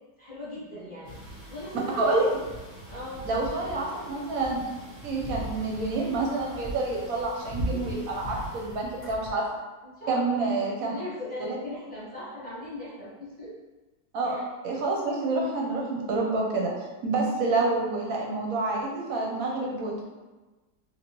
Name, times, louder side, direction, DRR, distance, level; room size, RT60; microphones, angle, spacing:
voice 1, 0.2-2.2 2.9-3.2 7.7-8.0 9.8-10.4 10.9-13.5 14.2-14.4, left 1 dB, 5° left, -11 dB, 1.1 m, -39 dB
sound 1, 1.0-9.3, right 1 dB, 40° left, 0.7 m, -39 dB
voice 2, 3.2-4.6 5.0-9.4 10.1-10.9 11.5-11.6 14.1-16.7 17.0-20.0, right 3 dB, 65° right, -2 dB, 1.0 m, -28 dB
3.0 x 2.8 x 2.9 m, 1.2 s
omnidirectional pair, 1.8 m